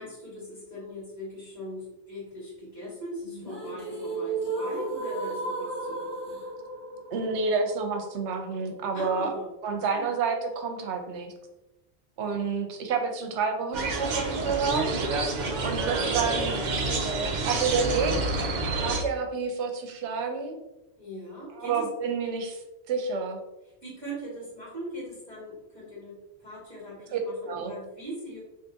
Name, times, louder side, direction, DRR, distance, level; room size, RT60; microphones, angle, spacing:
voice 1, 0.0-6.4 8.9-10.1 15.9-16.1 21.0-21.9 23.8-28.4, equal, 15° left, -5 dB, 1.3 m, -40 dB
sound 1, 3.2-9.2, right 3 dB, 35° right, 0.9 m, -35 dB
voice 2, 7.1-9.3 9.6-11.3 12.2-14.9 15.6-17.1 17.4-18.2 18.8-20.6 21.6-22.6 22.9-23.4 27.1-27.2 27.5-27.7, right 5 dB, 80° right, 5 dB, 0.9 m, -29 dB
sound 2, 13.7-19.0, right 3 dB, 55° right, 0.5 m, -28 dB
3.6 x 2.5 x 2.6 m, 0.95 s
omnidirectional pair, 1.2 m